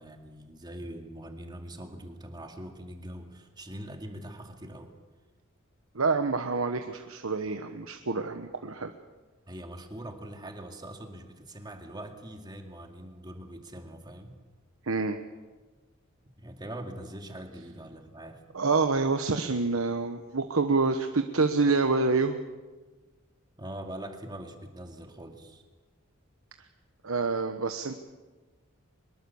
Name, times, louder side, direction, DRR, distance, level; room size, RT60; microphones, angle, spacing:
voice 1, 0.0-4.9 9.5-14.4 16.4-18.4 23.6-25.6, right 1 dB, 20° right, 4 dB, 2.3 m, -42 dB
voice 2, 5.9-8.9 14.8-15.2 18.5-22.4 27.0-28.0, right 4 dB, 80° right, 7 dB, 1.2 m, -27 dB
24.0 x 21.5 x 7.1 m, 1.3 s
head